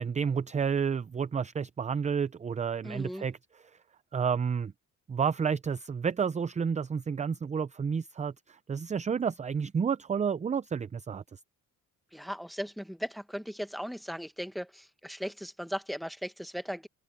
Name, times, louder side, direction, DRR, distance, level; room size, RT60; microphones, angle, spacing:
voice 1, 0.0-3.4 4.1-4.7 5.1-11.4, right 6 dB, 20° right, 0.5 m, -30 dB
voice 2, 2.8-3.3 12.1-16.9, equal, ahead, 1.3 m, -37 dB
open air
cardioid pair, 105°, 33 cm